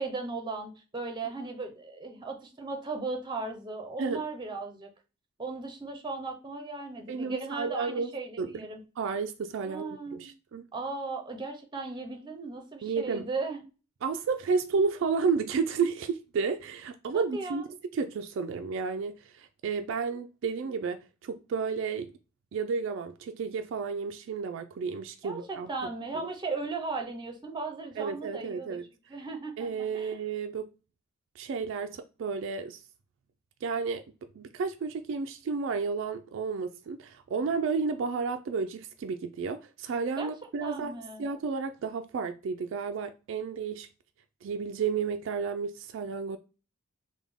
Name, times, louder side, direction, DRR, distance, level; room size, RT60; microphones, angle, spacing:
voice 1, 0.0-4.9 5.4-8.8 9.6-10.3 10.7-13.6 17.1-17.6 25.2-28.8 29.1-30.2 40.2-40.3 40.6-41.2, right 3 dB, 20° right, 0.6 m, -37 dB
voice 2, 7.1-8.1 8.4-8.7 9.0-10.7 12.8-13.3 14.0-22.1 22.5-25.7 26.2-26.3 28.0-28.8 29.6-30.7 31.4-32.8 33.6-34.0 34.4-43.9 44.4-46.4, right 5 dB, 65° right, 0.3 m, -32 dB
3.5 x 2.1 x 3.5 m
head